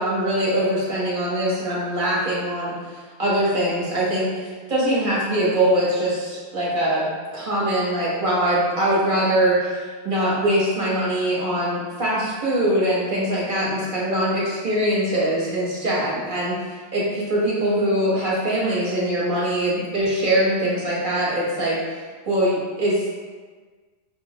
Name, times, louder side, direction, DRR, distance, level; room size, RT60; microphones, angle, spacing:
voice 1, 0.0-21.8 22.3-23.1, right 1 dB, 50° right, -7 dB, 1.1 m, -22 dB
5.1 x 2.0 x 2.7 m, 1.5 s
omnidirectional pair, 1.1 m